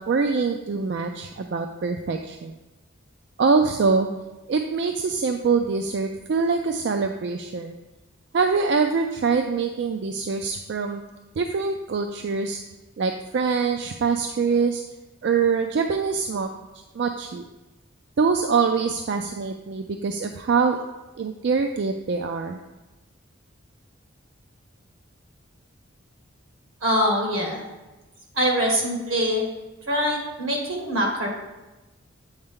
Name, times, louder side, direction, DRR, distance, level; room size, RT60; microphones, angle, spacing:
voice 1, 0.1-2.5 3.4-4.1 4.5-7.8 8.3-11.0 11.4-12.6 13.0-14.8 15.2-16.5 16.9-17.4 18.2-20.8 21.2-22.6, right 5 dB, 55° right, 5 dB, 0.3 m, -24 dB
voice 2, 26.8-27.6 28.4-29.4 29.9-31.3, equal, 85° right, 0 dB, 1.8 m, -23 dB
7.9 x 4.3 x 3.7 m, 1.1 s
head